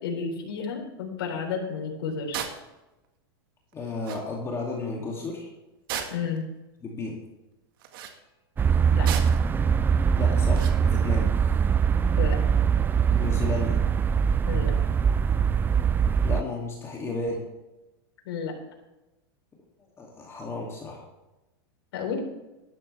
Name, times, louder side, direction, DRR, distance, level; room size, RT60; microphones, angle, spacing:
voice 1, 0.0-2.4 6.1-6.4 8.9-9.1 12.2-12.4 14.5-14.7 18.3-18.5 21.9-22.2, left 6 dB, 70° left, 1 dB, 4.0 m, -31 dB
sound 1, 2.3-2.6 3.7-3.8 4.0-4.2 5.9-6.4 7.8-8.2 9.0-9.5 10.5-10.8, right 9 dB, 65° right, 1.8 m, -34 dB
voice 2, 3.7-5.5 6.8-7.2 10.1-11.3 13.1-13.8 16.2-17.5 20.0-21.0, left 3 dB, 20° left, -2 dB, 2.6 m, -33 dB
sound 2, 8.6-16.4, right 7 dB, 15° right, 0.4 m, -22 dB
13.0 x 12.0 x 3.4 m, 1.0 s
hypercardioid pair, 120°, 13 cm